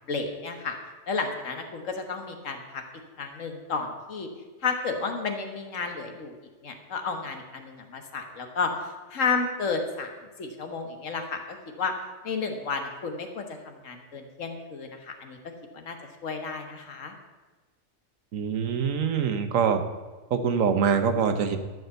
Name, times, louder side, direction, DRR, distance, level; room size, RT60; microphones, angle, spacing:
voice 1, 0.1-0.8 1.1-2.8 3.2-4.3 4.6-6.3 6.6-10.1 10.4-11.9 12.2-15.4 15.7-16.0 16.2-17.1, left 4 dB, 75° left, 5 dB, 1.7 m, -32 dB
voice 2, 18.3-19.8 20.3-21.6, right 6 dB, 90° right, 8 dB, 1.3 m, -24 dB
12.5 x 5.2 x 8.0 m, 1.3 s
omnidirectional pair, 1.3 m